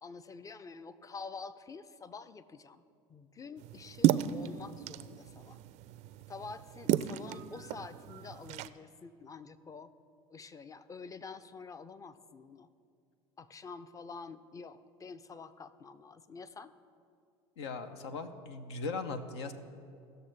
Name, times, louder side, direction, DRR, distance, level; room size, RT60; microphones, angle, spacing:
voice 1, 0.0-2.8 3.1-5.6 6.3-9.9 10.3-12.7 13.4-16.7, left 4 dB, 25° left, 13 dB, 0.5 m, -47 dB
sound 1, 3.6-8.7, right 12 dB, 60° right, 0.4 m, -33 dB
voice 2, 17.6-19.5, left 4 dB, 85° left, 8 dB, 0.7 m, -39 dB
16.5 x 6.6 x 3.3 m, 2.4 s
hypercardioid pair, 80°, 14 cm